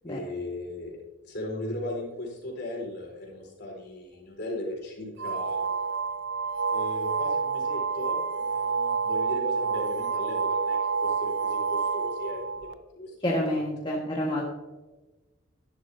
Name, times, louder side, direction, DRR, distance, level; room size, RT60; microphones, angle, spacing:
voice 1, 0.0-1.0 1.2-5.6 6.7-13.2, left 1 dB, 60° left, -2 dB, 3.9 m, -37 dB
sound 1, 5.2-12.7, right 5 dB, 60° right, 0.5 m, -28 dB
voice 2, 13.2-14.4, left 1 dB, 25° left, -3 dB, 1.5 m, -28 dB
12.0 x 10.5 x 2.7 m, 1.2 s
head